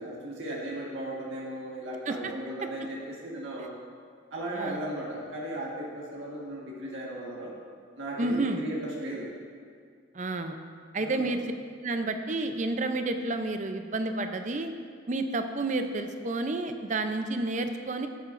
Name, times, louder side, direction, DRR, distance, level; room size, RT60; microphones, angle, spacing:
voice 1, 0.0-3.8 4.3-7.5 8.0-9.3 11.0-11.4, right 1 dB, 80° right, -4 dB, 1.5 m, -36 dB
voice 2, 8.2-8.6 10.1-10.6 10.9-11.4 11.8-14.7 15.1-18.1, right 2 dB, 40° right, 7 dB, 0.5 m, -30 dB
13.5 x 9.4 x 2.6 m, 2.1 s
head